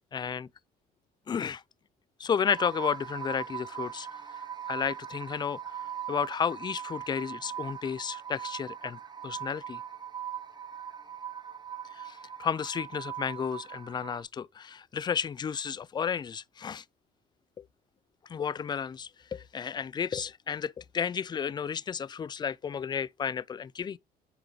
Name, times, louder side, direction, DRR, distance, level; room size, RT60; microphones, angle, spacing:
voice 1, 0.1-0.5 1.3-1.6 2.2-4.1 4.7-5.6 6.1-9.8 11.9-16.8 17.6-17.7 18.3-24.0, left 7 dB, 25° left, 0.4 m, -32 dB
sound 1, 2.4-14.2, right 9 dB, 25° right, 0.8 m, -40 dB
9.8 x 3.8 x 3.1 m
cardioid pair, 110°, 17 cm